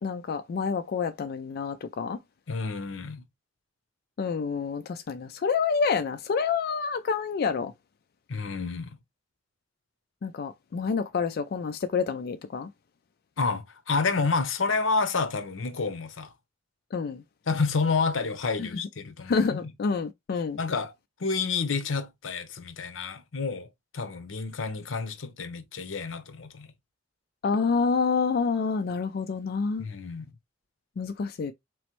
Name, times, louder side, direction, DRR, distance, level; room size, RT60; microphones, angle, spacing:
voice 1, 0.0-2.2 4.2-7.7 10.2-12.7 16.9-17.2 18.6-18.7 19.3-20.6 27.4-29.9 31.0-31.5, left 5 dB, 55° left, 0.3 m, -28 dB
voice 2, 2.5-3.2 8.3-9.0 13.4-16.3 17.5-19.7 20.6-20.9 21.2-23.7 23.9-26.7 29.8-30.3, left 4 dB, 80° left, 0.7 m, -29 dB
4.0 x 3.1 x 3.0 m
head